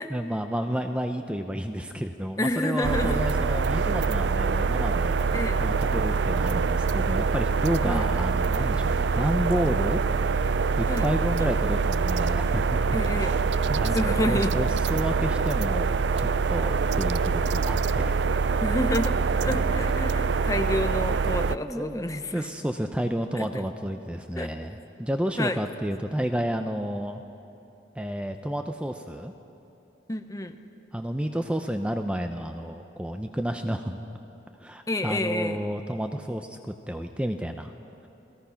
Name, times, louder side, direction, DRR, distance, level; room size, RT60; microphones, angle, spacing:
voice 1, 0.1-5.2 5.6-13.0 13.7-18.2 19.5-19.9 21.5-22.1 22.3-27.2 28.0-29.3 30.9-34.0 34.6-37.7, equal, 5° right, 6 dB, 0.6 m, -31 dB
voice 2, 2.4-3.2 5.3-5.6 7.8-8.1 10.9-11.0 12.9-13.4 13.9-14.5 18.6-19.1 19.4-22.5 23.4-23.5 24.4-24.5 25.4-25.6 30.1-30.6 34.9-35.6, left 1 dB, 20° left, 7 dB, 0.9 m, -29 dB
sound 1, 2.8-21.6, right 4 dB, 85° right, 0.5 m, -25 dB
29.5 x 18.5 x 5.8 m, 2.8 s
head